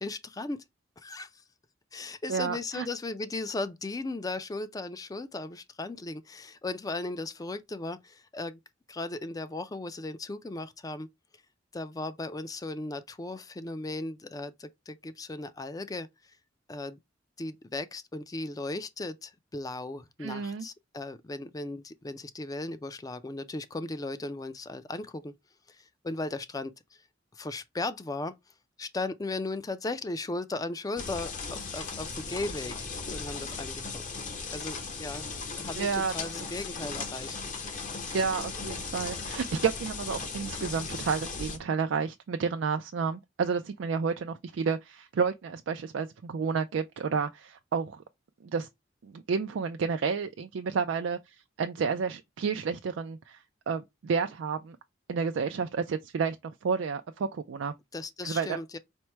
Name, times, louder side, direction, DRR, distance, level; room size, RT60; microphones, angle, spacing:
voice 1, 0.0-0.6 1.0-1.3 1.9-8.6 8.9-11.1 11.7-16.1 16.7-17.0 17.4-25.3 25.7-26.7 27.3-28.3 28.8-32.8 33.1-34.0 34.5-35.3 35.6-37.4 57.9-58.8, left 2 dB, 20° left, 0.4 m, -36 dB
voice 2, 2.3-2.9 20.2-20.7 35.8-36.1 38.1-48.0 48.4-48.7 49.0-51.2 51.6-53.4 53.7-54.8 55.1-57.7 58.2-58.6, right 5 dB, 90° right, 0.4 m, -30 dB
sound 1, 31.0-41.6, left 4 dB, 45° left, 0.8 m, -37 dB
4.4 x 2.1 x 4.4 m
head